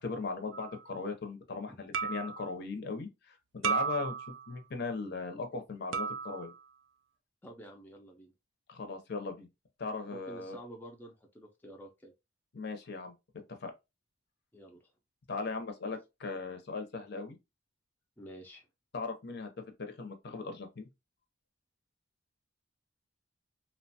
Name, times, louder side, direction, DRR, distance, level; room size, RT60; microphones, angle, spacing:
voice 1, 0.0-4.2 4.5-6.5 8.7-9.5 9.8-10.6 12.5-13.1 13.6-13.7 15.3-17.4 18.9-19.5 19.8-20.9, left 4 dB, 55° left, 0.6 m, -38 dB
sound 1, 0.5-0.8 1.9-2.5 3.6-4.5 5.9-6.6, right 6 dB, 70° right, 0.3 m, -34 dB
voice 2, 7.4-8.3 10.1-12.1 14.5-14.9 18.2-18.6, right 1 dB, 10° left, 0.4 m, -50 dB
2.8 x 2.1 x 2.7 m
head